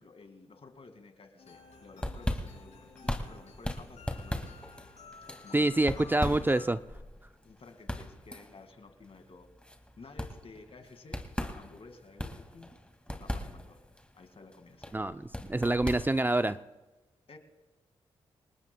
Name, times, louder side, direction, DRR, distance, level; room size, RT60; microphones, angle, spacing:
voice 1, 0.0-4.6 5.3-6.2 6.5-6.6 7.4-9.5 10.0-11.2 11.5-12.7 13.1-13.8 14.1-15.0 17.3-17.4, left 3 dB, 50° left, 7 dB, 2.1 m, -53 dB
sound 1, 1.4-6.6, left 4 dB, 75° left, 6.6 m, -52 dB
sound 2, 1.7-16.6, left 1 dB, 10° left, 2.2 m, -39 dB
voice 2, 5.5-6.8 14.9-16.6, right 2 dB, 15° right, 11 dB, 0.6 m, -27 dB
28.0 x 18.5 x 2.3 m, 1.1 s
supercardioid pair, 45°, 12 cm